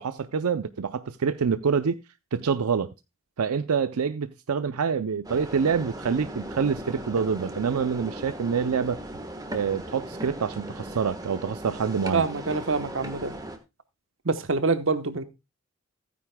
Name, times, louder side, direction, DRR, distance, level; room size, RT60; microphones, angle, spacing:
voice 1, 0.0-2.0 2.3-2.9 3.4-9.0 9.5-12.3, right 6 dB, 90° right, 0.5 m, -26 dB
sound 1, 5.2-13.6, right 1 dB, 15° right, 1.2 m, -38 dB
voice 2, 12.1-13.3 14.2-15.2, right 4 dB, 65° right, 1.0 m, -26 dB
15.5 x 9.5 x 2.2 m
head